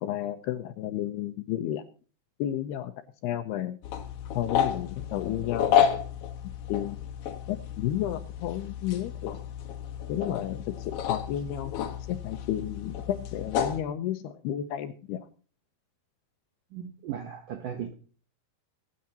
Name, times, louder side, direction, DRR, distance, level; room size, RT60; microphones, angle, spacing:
voice 1, 0.0-1.8 2.4-2.9 3.2-3.8 4.3-5.8 6.7-7.0 7.5-9.4 10.1-15.3, left 12 dB, 80° left, 2.4 m, -32 dB
sound 1, 3.8-13.8, left 9 dB, 60° left, 2.7 m, -31 dB
voice 2, 16.7-17.9, right 9 dB, 75° right, 1.9 m, -37 dB
24.0 x 9.6 x 2.9 m
omnidirectional pair, 5.3 m